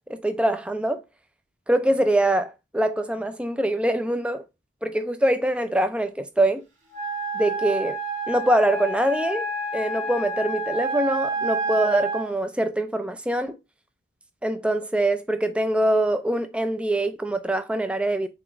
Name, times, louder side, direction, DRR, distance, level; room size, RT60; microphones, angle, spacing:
voice 1, 0.1-1.0 1.7-4.5 4.8-6.6 7.3-8.0 8.3-9.5 9.7-13.6 14.4-18.3, right 1 dB, 5° right, 0.4 m, -24 dB
Wind instrument woodwind instrument, 6.9-12.3, right 2 dB, 85° right, 2.3 m, -29 dB
7.0 x 3.0 x 2.5 m
head